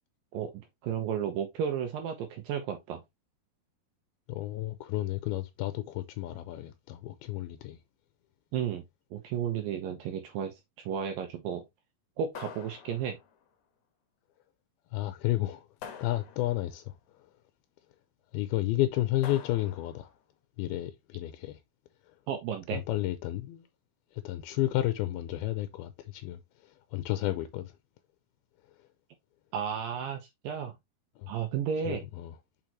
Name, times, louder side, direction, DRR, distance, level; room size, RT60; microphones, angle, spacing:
voice 1, 0.3-3.0 8.5-8.8 9.1-10.5 10.9-11.6 12.2-13.2 22.3-22.8 29.5-30.7 31.3-32.0, right 8 dB, 75° right, 2.4 m, -33 dB
voice 2, 4.3-7.8 14.9-15.7 16.0-16.9 18.3-20.1 20.6-21.6 22.7-23.6 24.1-27.7 31.2-31.3 31.8-32.4, left 15 dB, 85° left, 2.5 m, -32 dB
sound 1, 12.3-13.4 15.8-16.8 19.2-20.1, left 8 dB, 65° left, 2.1 m, -46 dB
6.3 x 5.2 x 2.9 m
omnidirectional pair, 4.5 m